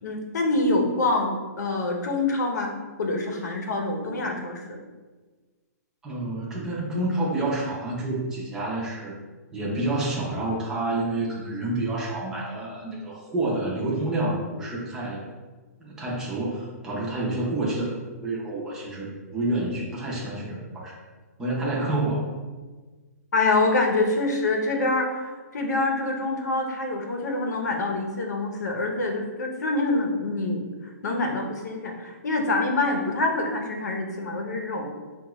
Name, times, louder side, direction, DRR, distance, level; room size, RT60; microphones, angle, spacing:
voice 1, 0.0-4.8 23.3-30.7 31.0-34.9, left 2 dB, 85° left, 2 dB, 0.8 m, -26 dB
voice 2, 6.0-9.1 9.5-15.2 15.8-20.9 21.4-22.3, right 2 dB, 5° right, -6 dB, 0.6 m, -28 dB
4.7 x 2.4 x 3.0 m, 1.3 s
hypercardioid pair, 165°, 9 cm